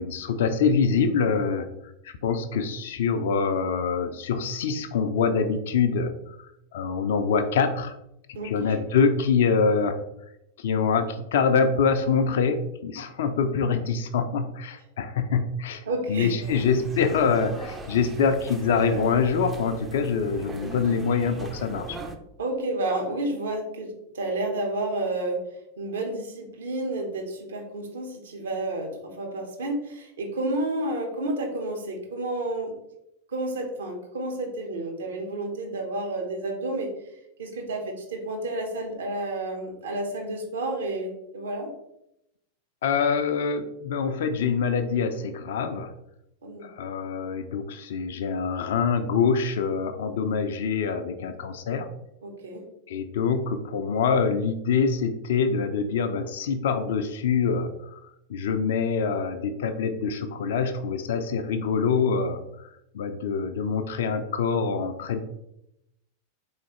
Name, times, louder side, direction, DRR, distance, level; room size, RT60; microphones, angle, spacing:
voice 1, 0.0-1.7 2.0-8.0 8.3-10.0 10.6-22.0 42.8-45.9 46.6-51.9 52.9-58.0 58.3-62.7 62.9-65.2, left 5 dB, 55° left, 8 dB, 0.3 m, -25 dB
voice 2, 15.9-16.5 22.4-25.4 25.8-32.7 33.3-36.9 37.4-41.7 46.4-46.7 52.2-52.6, right 2 dB, 65° right, 2 dB, 0.8 m, -30 dB
sound 1, 16.4-22.2, right 2 dB, 15° right, 0.4 m, -39 dB
4.0 x 3.1 x 2.9 m, 0.84 s
figure-of-eight pair, 90°, 0 cm